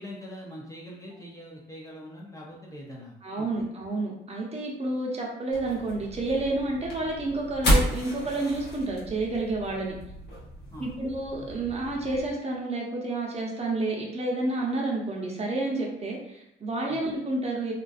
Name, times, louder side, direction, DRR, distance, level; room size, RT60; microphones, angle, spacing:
voice 1, 0.0-3.5 10.7-11.0 11.3-11.5 16.9-17.0, equal, 15° left, -3 dB, 0.4 m, -43 dB
voice 2, 3.2-10.0 10.8-17.7, right 2 dB, 30° right, -2 dB, 0.7 m, -30 dB
sound 1, 5.5-12.3, equal, 55° left, 0.9 m, -31 dB
2.4 x 2.3 x 2.3 m, 0.80 s
cardioid pair, 90°, 20 cm